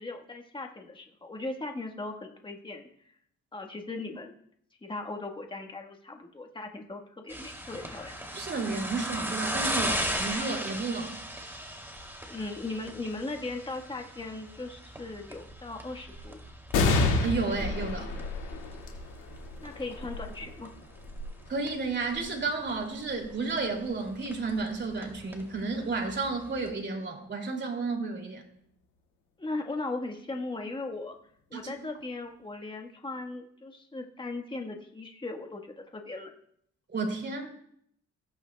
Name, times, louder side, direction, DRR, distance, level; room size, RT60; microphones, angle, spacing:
voice 1, 0.0-2.9 3.5-4.3 4.8-8.2 12.3-16.4 19.6-20.7 29.4-31.2 31.5-36.3, left 2 dB, 15° left, 3 dB, 1.4 m, -38 dB
sound 1, 7.3-26.7, equal, 10° right, 2.7 m, -38 dB
voice 2, 8.3-11.2 17.0-18.1 21.5-28.4 31.5-31.7 36.9-37.5, right 3 dB, 35° right, 2 dB, 2.7 m, -32 dB
sound 2, 16.7-23.6 24.2-24.3 25.4-26.0, left 3 dB, 85° left, 2.2 m, -32 dB
15.5 x 9.4 x 2.3 m, 0.68 s
cardioid pair, 90°, 30 cm